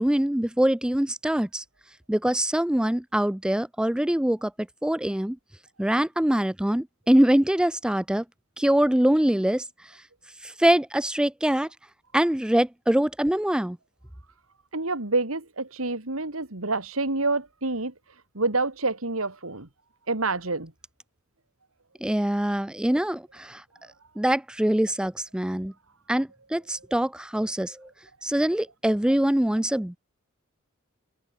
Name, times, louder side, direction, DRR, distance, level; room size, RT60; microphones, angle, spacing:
voice 1, 0.0-1.6 2.1-4.5 4.8-5.4 5.8-8.2 8.6-9.6 10.4-11.7 12.1-13.8 22.0-23.6 24.2-25.7 26.1-27.9 28.2-30.0, right 1 dB, 5° right, 0.4 m, -23 dB
voice 2, 14.7-17.9 18.3-19.7 20.1-20.7, right 3 dB, 85° right, 3.2 m, -27 dB
head